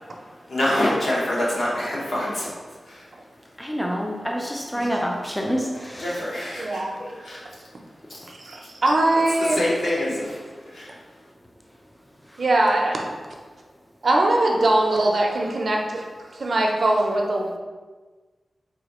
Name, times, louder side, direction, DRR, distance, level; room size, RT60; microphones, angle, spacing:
voice 1, 0.5-2.5 2.9-3.0 6.0-7.4 8.1-8.2 9.5-10.4 10.6-10.9, left 1 dB, 65° left, 1.0 m, -26 dB
voice 2, 3.6-6.2 9.6-9.7, equal, 5° left, 0.3 m, -27 dB
voice 3, 6.6-7.0 8.3-9.6 12.4-13.0 14.0-16.0 16.3-17.6, right 2 dB, 50° right, 0.5 m, -21 dB
4.0 x 2.7 x 2.9 m
wide cardioid pair, 150°, 0 cm